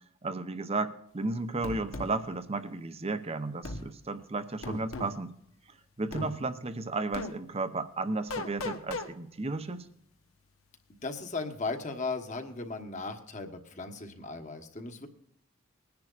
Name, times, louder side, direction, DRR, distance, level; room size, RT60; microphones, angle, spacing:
voice 1, 0.2-5.3 5.7-9.9, right 3 dB, 30° right, 10 dB, 0.7 m, -34 dB
sound 1, 1.6-2.1 3.6-3.8 4.6-5.1 6.1-6.3 7.1-7.3 8.3-9.1, left 2 dB, 85° left, 1.2 m, -36 dB
voice 2, 11.0-15.1, left 3 dB, 35° left, 6 dB, 1.2 m, -37 dB
20.5 x 10.5 x 2.5 m, 0.71 s
head